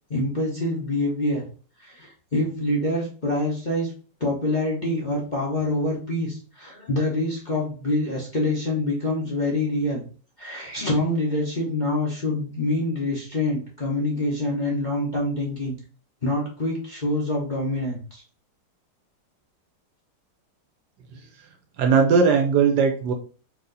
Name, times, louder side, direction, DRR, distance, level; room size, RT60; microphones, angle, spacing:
voice 1, 0.1-1.4 1.8-3.9 4.2-10.0 10.4-15.7 16.2-18.2, left 1 dB, 30° left, -4 dB, 0.9 m, -26 dB
voice 2, 21.8-23.1, right 5 dB, 70° right, 4 dB, 1.1 m, -19 dB
4.6 x 2.8 x 3.9 m, 0.39 s
omnidirectional pair, 2.0 m